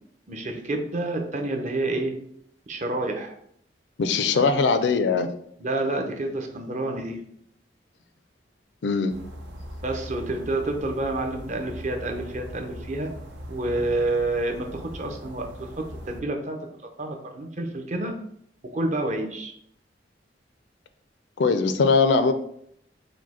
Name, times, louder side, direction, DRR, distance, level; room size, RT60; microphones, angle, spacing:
voice 1, 0.3-2.1 2.7-3.3 5.6-7.2 9.8-13.1 13.5-16.6 17.0-18.1 18.7-19.5, right 2 dB, 40° right, 3 dB, 0.6 m, -28 dB
voice 2, 4.0-5.3 8.8-9.1 21.4-22.3, left 4 dB, 75° left, 10 dB, 0.4 m, -21 dB
sound 1, 9.1-16.2, equal, 90° right, 0.8 m, -40 dB
5.0 x 2.1 x 4.2 m, 0.68 s
head